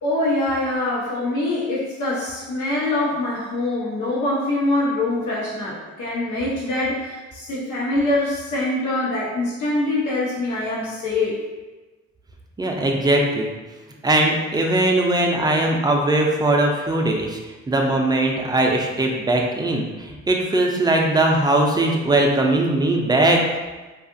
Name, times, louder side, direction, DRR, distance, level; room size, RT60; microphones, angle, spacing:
voice 1, 0.0-11.4, left 2 dB, 80° left, -7 dB, 0.8 m, -24 dB
voice 2, 12.6-13.5 14.0-17.4 17.7-23.4, right 1 dB, 15° right, 1 dB, 0.4 m, -20 dB
2.7 x 2.4 x 2.5 m, 1.2 s
cardioid pair, 90°, 30 cm